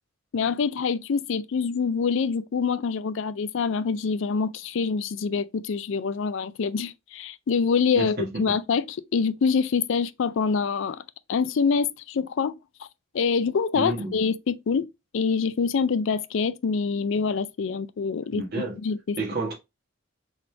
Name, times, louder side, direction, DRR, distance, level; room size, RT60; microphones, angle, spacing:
voice 1, 0.3-11.0 11.3-12.5 13.1-14.9 15.1-19.2, left 5 dB, 60° left, 0.4 m, -25 dB
voice 2, 7.9-8.5 13.7-14.1 18.3-18.8 19.2-19.5, right 2 dB, 50° right, 1.4 m, -30 dB
4.0 x 3.1 x 3.3 m
head